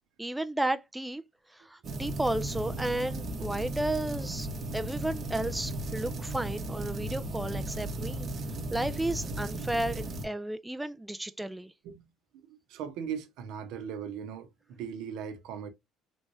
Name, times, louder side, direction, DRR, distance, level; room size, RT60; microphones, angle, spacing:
voice 1, 0.2-1.2 1.5-4.5 4.7-8.3 8.7-11.7, right 1 dB, 5° right, 0.3 m, -33 dB
sound 1, 1.8-10.2, right 1 dB, 40° right, 0.8 m, -36 dB
voice 2, 12.3-15.7, right 7 dB, 80° right, 0.7 m, -39 dB
3.4 x 3.1 x 2.5 m
cardioid pair, 120°, 0 cm